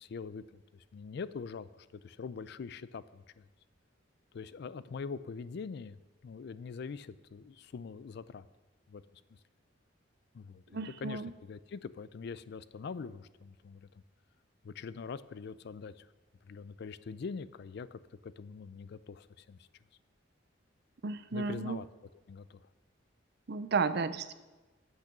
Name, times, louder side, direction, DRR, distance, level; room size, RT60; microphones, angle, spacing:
voice 1, 0.0-1.7 2.0-3.5 4.3-8.4 8.9-9.0 9.3-9.4 10.3-13.9 14.6-16.1 16.5-19.7 21.3-21.9 22.3-22.6, left 5 dB, 60° left, 16 dB, 0.4 m, -43 dB
voice 2, 10.7-11.3 21.0-21.8 23.5-24.3, right 4 dB, 55° right, 13 dB, 0.5 m, -33 dB
8.9 x 8.3 x 6.0 m, 1.2 s
head